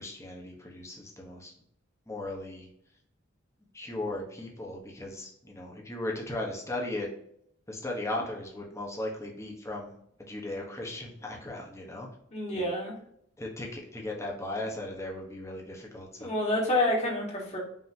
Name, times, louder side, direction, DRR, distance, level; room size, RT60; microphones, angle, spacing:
voice 1, 0.0-1.5 2.1-2.7 3.7-7.1 7.7-12.1 12.5-12.7 13.4-16.3, left 1 dB, 15° left, -1 dB, 1.0 m, -37 dB
voice 2, 12.3-12.9 16.2-17.6, left 1 dB, 35° left, -2 dB, 1.5 m, -28 dB
5.6 x 2.9 x 2.8 m, 0.71 s
head